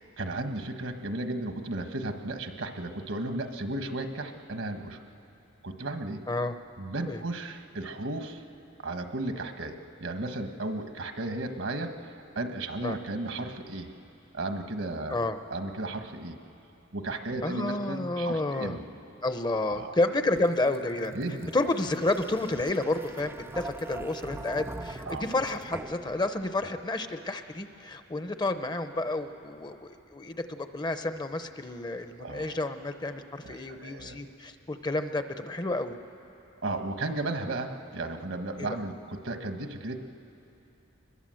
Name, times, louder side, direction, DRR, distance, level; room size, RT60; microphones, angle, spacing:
voice 1, 0.2-5.0 5.6-6.2 6.8-8.4 8.8-13.9 14.3-15.2 15.5-16.4 16.9-18.8 19.7-19.9 21.1-21.5 25.1-25.2 32.2-32.6 33.4-34.2 36.6-40.0, right 2 dB, 70° right, 6 dB, 1.4 m, -34 dB
voice 2, 17.4-18.8 19.2-21.1 21.5-36.0 38.6-38.8, left 2 dB, 20° left, 9 dB, 0.7 m, -30 dB
sound 1, 20.4-27.1, right 2 dB, 10° right, 0.4 m, -43 dB
25.0 x 21.0 x 7.7 m, 2.9 s
head